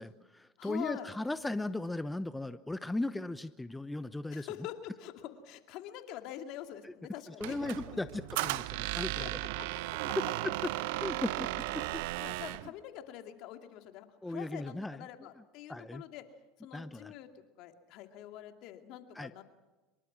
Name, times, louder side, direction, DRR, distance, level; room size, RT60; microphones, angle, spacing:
voice 1, 0.0-4.5 6.8-6.9 7.4-9.3 10.4-10.7 11.0-11.5 11.7-12.0 14.2-15.1 15.7-16.0 16.7-17.1 19.1-19.3, left 2 dB, 10° left, 13 dB, 0.9 m, -37 dB
voice 2, 0.6-1.1 4.3-8.0 9.2-10.2 12.2-16.3 16.6-19.4, left 11 dB, 60° left, 6 dB, 2.6 m, -45 dB
Squeak, 7.4-12.7, right 19 dB, 70° right, 0.7 m, -35 dB
25.0 x 23.0 x 6.1 m, 1.1 s
hypercardioid pair, 85°, 0 cm